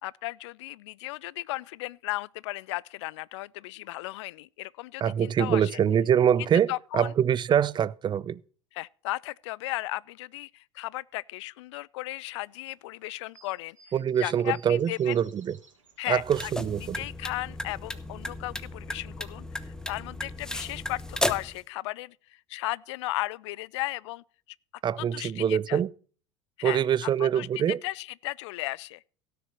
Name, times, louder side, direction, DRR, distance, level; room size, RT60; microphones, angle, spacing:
voice 1, 0.0-5.8 6.7-7.1 8.7-13.8 14.2-15.2 16.0-16.5 16.8-24.2 25.0-25.8 26.6-27.5 27.8-29.0, left 19 dB, 65° left, 0.4 m, -35 dB
voice 2, 5.0-8.4 13.9-15.5 16.1-17.0 24.8-25.9 26.6-27.8, right 9 dB, 30° right, 0.6 m, -24 dB
sound 1, 12.3-16.8 17.1-18.3 18.5-21.1, right 4 dB, 85° right, 2.8 m, -59 dB
sound 2, 16.1-21.6, left 1 dB, 5° left, 1.0 m, -35 dB
17.0 x 6.8 x 4.4 m
figure-of-eight pair, 75°, 16 cm